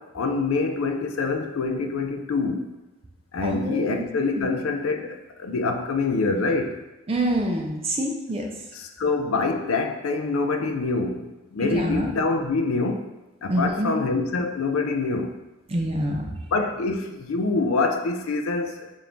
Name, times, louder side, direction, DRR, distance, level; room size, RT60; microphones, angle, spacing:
voice 1, 0.0-2.7 3.3-6.8 8.8-13.0 13.4-15.4 16.5-18.9, left 3 dB, 90° left, 6 dB, 0.4 m, -25 dB
voice 2, 3.4-4.0 4.4-4.5 7.1-8.5 11.6-12.1 13.5-13.9 15.7-16.2, right 1 dB, 30° right, 1 dB, 0.5 m, -26 dB
4.9 x 2.6 x 3.0 m, 1.1 s
head